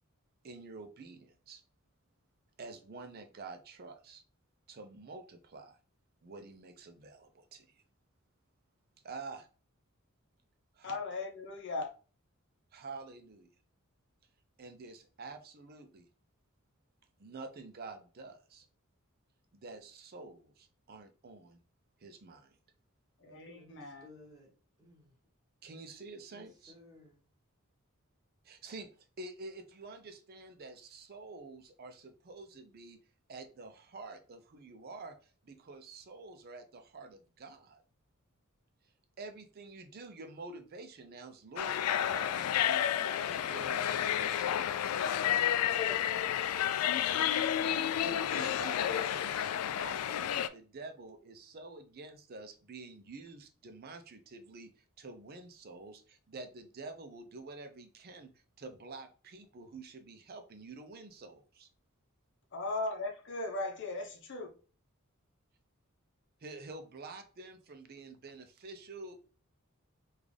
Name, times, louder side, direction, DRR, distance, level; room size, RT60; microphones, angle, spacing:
voice 1, 0.4-1.6 2.6-4.2 4.7-5.8 6.2-7.8 9.0-9.5 10.7-11.0 12.7-13.5 14.6-16.1 17.2-18.7 19.5-21.6 22.0-22.6 25.6-26.7 28.4-28.9 29.2-33.0 33.3-37.8 39.2-45.0 48.0-49.4 49.8-58.3 58.6-61.7 66.4-69.2, right 3 dB, 45° right, 0.5 m, -48 dB
voice 2, 10.8-11.9 23.2-24.0 45.7-46.0 62.5-64.5, left 3 dB, 55° left, 0.7 m, -38 dB
voice 3, 23.3-25.1 26.3-27.2 45.3-46.1, left 2 dB, 20° right, 1.3 m, -58 dB
sound 1, 41.6-50.5, left 10 dB, 80° left, 0.3 m, -31 dB
3.8 x 2.4 x 3.2 m
head